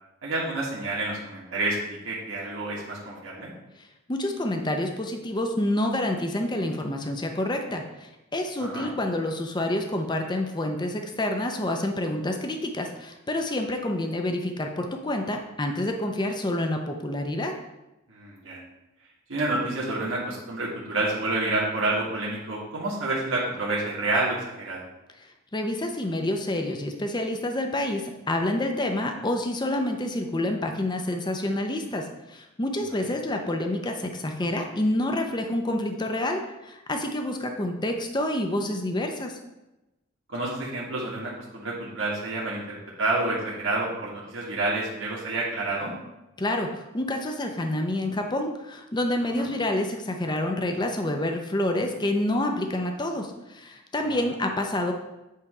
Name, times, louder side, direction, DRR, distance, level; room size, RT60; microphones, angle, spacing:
voice 1, 0.2-3.5 8.6-8.9 18.1-18.6 19.3-24.8 40.3-45.9 49.4-49.5 54.0-54.2, right 2 dB, 65° right, -5 dB, 1.5 m, -29 dB
voice 2, 3.8-17.5 25.2-39.4 46.4-54.9, left 1 dB, 20° left, 4 dB, 0.6 m, -28 dB
8.4 x 3.4 x 4.8 m, 0.96 s
head